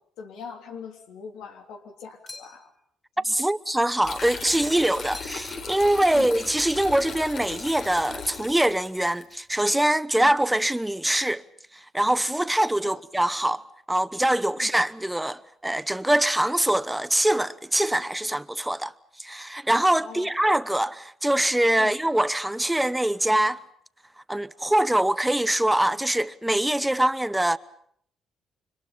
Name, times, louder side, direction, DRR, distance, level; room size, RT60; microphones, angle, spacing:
voice 1, 0.2-2.7 3.2-3.4 6.1-6.3 10.1-10.3 14.6-14.7 20.0-20.3 21.8-22.0, left 6 dB, 90° left, 3.4 m, -41 dB
sound 1, 2.3-2.9 5.1-5.6 5.9-6.6, left 2 dB, 20° left, 3.3 m, -46 dB
voice 2, 3.2-11.4 11.9-18.9 19.2-23.6 24.3-27.6, right 1 dB, 5° right, 1.0 m, -23 dB
sound 2, 4.0-9.2, left 5 dB, 60° left, 4.0 m, -37 dB
29.5 x 25.0 x 5.7 m
cardioid pair, 90°, 0 cm